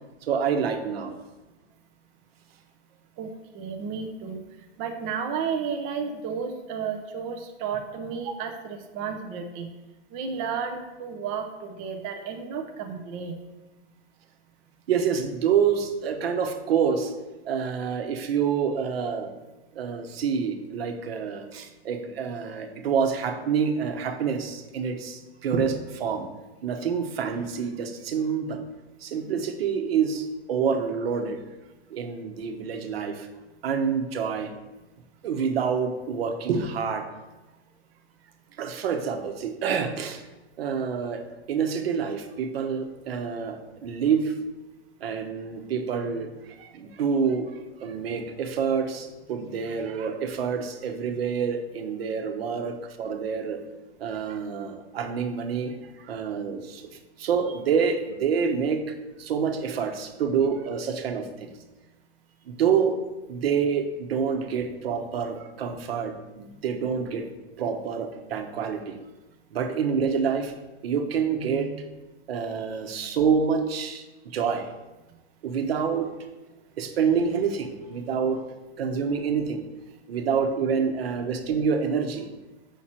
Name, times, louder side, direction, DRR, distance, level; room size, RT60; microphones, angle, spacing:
voice 1, 0.2-1.2 14.9-17.1 17.4-19.3 19.7-26.3 26.6-28.6 29.0-31.4 31.9-33.3 33.6-34.5 35.2-37.0 38.6-40.2 40.6-41.2 41.5-44.4 45.0-53.6 54.0-56.9 57.2-61.5 62.5-63.0 63.3-67.3 67.6-69.0 69.5-70.5 70.8-71.9 72.3-74.7 75.4-76.1 76.8-78.4 78.8-79.6 80.1-82.3, right 6 dB, 55° right, 6 dB, 1.1 m, -27 dB
voice 2, 3.2-4.4 4.8-9.7 10.1-13.4, right 6 dB, 20° right, 5 dB, 0.5 m, -32 dB
7.5 x 5.8 x 4.3 m, 1.1 s
hypercardioid pair, 150°, 35 cm